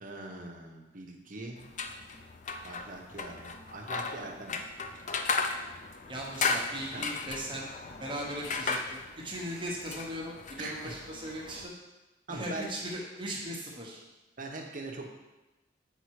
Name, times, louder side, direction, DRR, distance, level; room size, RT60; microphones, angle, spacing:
voice 1, 0.0-1.6 2.6-4.7 6.9-7.1 10.6-10.9 12.3-12.7 14.4-15.1, right 2 dB, 45° right, 1 dB, 0.9 m, -41 dB
sound 1, 1.6-11.7, left 4 dB, 45° left, 0.5 m, -36 dB
voice 2, 6.1-7.7 8.0-11.7 12.3-14.0, equal, 25° right, -3 dB, 1.1 m, -38 dB
8.0 x 4.2 x 4.7 m, 1.1 s
head